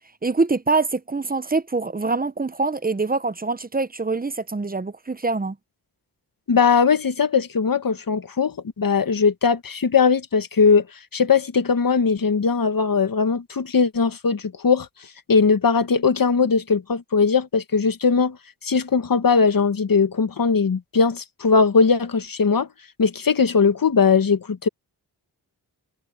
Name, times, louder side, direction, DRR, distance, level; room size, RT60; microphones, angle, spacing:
voice 1, 0.2-5.6, right 3 dB, 20° right, 0.9 m, -24 dB
voice 2, 6.5-10.8 11.1-14.9 15.3-18.4 18.6-22.7 23.0-24.7, left 5 dB, 55° left, 1.9 m, -19 dB
cardioid pair, 65°, 41 cm